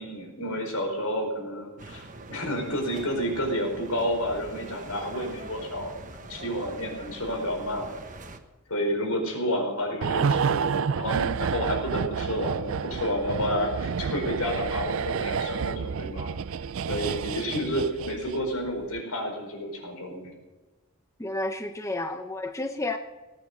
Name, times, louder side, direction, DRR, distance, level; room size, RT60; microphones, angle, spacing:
voice 1, 0.0-7.9 8.7-16.3 16.9-20.3, equal, 80° left, 2 dB, 4.8 m, -30 dB
sound 1, 1.8-8.4, right 2 dB, 35° right, 1.2 m, -43 dB
sound 2, 10.0-18.5 18.8-19.0, right 6 dB, 65° right, 0.4 m, -29 dB
voice 2, 21.2-23.0, left 2 dB, 15° left, 6 dB, 0.7 m, -31 dB
18.5 x 9.6 x 6.6 m, 1.2 s
head